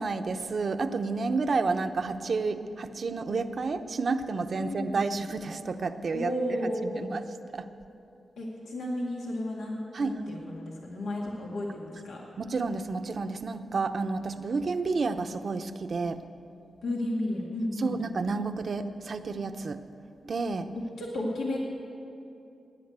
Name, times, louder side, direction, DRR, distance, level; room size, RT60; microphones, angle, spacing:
voice 1, 0.0-6.3 7.1-7.2 7.5-7.7 9.9-10.2 12.4-16.2 17.8-19.8 20.3-20.7, right 4 dB, 60° right, 9 dB, 0.8 m, -30 dB
voice 2, 4.6-5.0 6.1-7.3 8.4-12.2 16.8-18.0 21.0-21.6, left 1 dB, 90° left, -3 dB, 2.1 m, -33 dB
16.0 x 10.0 x 8.1 m, 2.7 s
cardioid pair, 55°, 0 cm